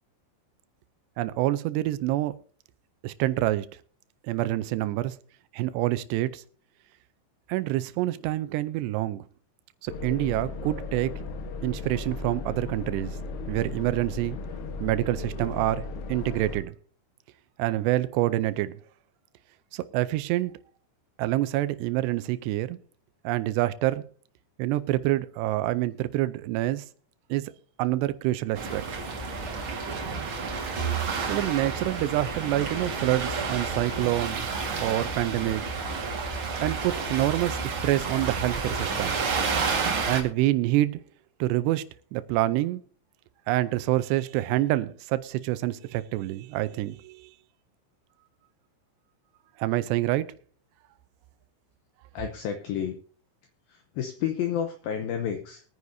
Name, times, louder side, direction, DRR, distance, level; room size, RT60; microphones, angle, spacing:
voice 1, 1.2-2.3 3.0-3.7 4.2-5.2 5.5-6.4 7.5-9.2 9.8-11.1 11.6-13.2 13.5-14.4 14.8-16.7 17.6-18.7 19.7-20.5 21.2-22.8 23.2-24.0 24.6-26.8 27.3-27.4 27.8-28.8 31.3-34.5 34.8-35.6 36.6-39.2 40.1-41.0 41.4-42.8 43.5-47.3 49.6-50.3, right 15 dB, 80° right, 2.5 m, -27 dB
sound 1, 9.9-16.6, left 3 dB, 70° left, 3.1 m, -36 dB
sound 2, 28.5-40.2, right 4 dB, 60° right, 1.3 m, -30 dB
voice 2, 52.1-53.0 53.7-55.6, left 9 dB, 90° left, 2.0 m, -30 dB
21.5 x 9.6 x 2.7 m
omnidirectional pair, 5.4 m